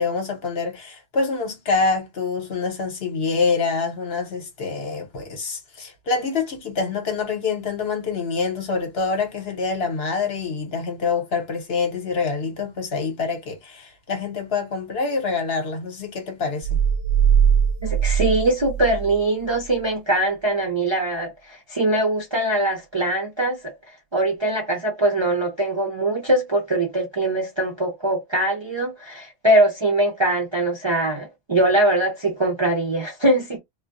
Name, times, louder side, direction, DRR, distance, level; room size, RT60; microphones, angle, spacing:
voice 1, 0.0-16.8, left 4 dB, 60° left, 1.1 m, -26 dB
sound 1, 16.6-19.2 19.5-19.6, right 8 dB, 70° right, 0.8 m, -20 dB
voice 2, 17.8-23.7 24.1-33.6, right 1 dB, 40° right, 0.4 m, -22 dB
2.3 x 2.1 x 2.5 m
omnidirectional pair, 1.2 m